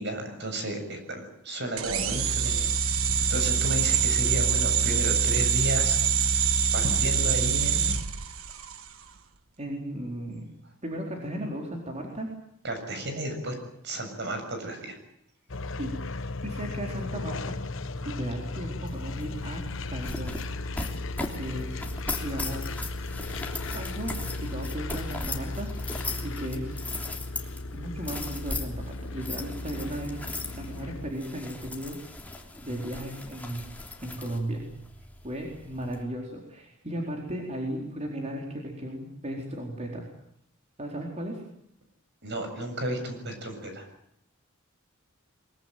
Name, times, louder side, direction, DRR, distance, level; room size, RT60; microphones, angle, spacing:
voice 1, 0.0-2.7 3.0-6.5 6.7-7.9 12.6-13.5 13.8-15.0 42.2-43.8, right 1 dB, 55° right, 6 dB, 7.3 m, -33 dB
sound 1, 1.8-8.9, right 6 dB, 85° right, 1.4 m, -25 dB
voice 2, 9.6-10.5 10.8-12.3 15.8-15.9 16.4-17.6 18.0-19.6 19.9-20.4 21.3-21.8 22.2-22.8 23.7-26.8 27.7-30.2 30.6-32.0 32.6-33.6 34.0-34.7 35.2-40.1 40.8-41.4, right 1 dB, 35° right, 0 dB, 4.2 m, -35 dB
sound 2, 15.5-31.1, left 2 dB, 65° left, 1.3 m, -36 dB
sound 3, 18.9-36.0, left 2 dB, 10° left, 3.3 m, -39 dB
23.0 x 22.5 x 9.2 m, 0.74 s
head